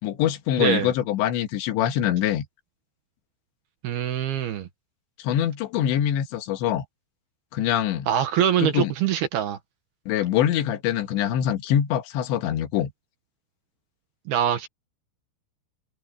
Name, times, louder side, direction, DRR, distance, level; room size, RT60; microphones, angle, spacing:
voice 1, 0.0-2.5 5.2-6.9 7.5-8.1 8.6-8.9 10.1-12.9, left 11 dB, 80° left, 3.8 m, -24 dB
voice 2, 0.6-0.9 3.8-4.7 8.1-9.6 14.3-14.7, right 10 dB, 70° right, 3.0 m, -24 dB
omnidirectional pair, 5.2 m